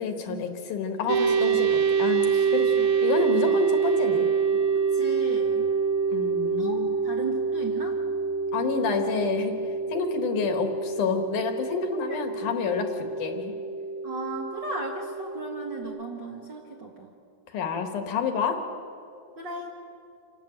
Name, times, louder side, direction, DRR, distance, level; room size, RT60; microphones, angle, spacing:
voice 1, 0.0-2.7 3.0-4.3 6.1-6.9 8.5-9.6 9.9-12.9 13.2-13.5 17.5-18.6, left 6 dB, 70° left, 6 dB, 2.9 m, -29 dB
sound 1, 1.1-15.8, right 6 dB, 70° right, 2.2 m, -26 dB
voice 2, 2.3-2.9 3.3-3.6 4.9-5.7 6.6-8.0 12.1-12.2 14.0-17.1 19.4-19.7, right 3 dB, 45° right, 0 dB, 1.6 m, -36 dB
27.5 x 12.0 x 8.9 m, 2.6 s
omnidirectional pair, 3.9 m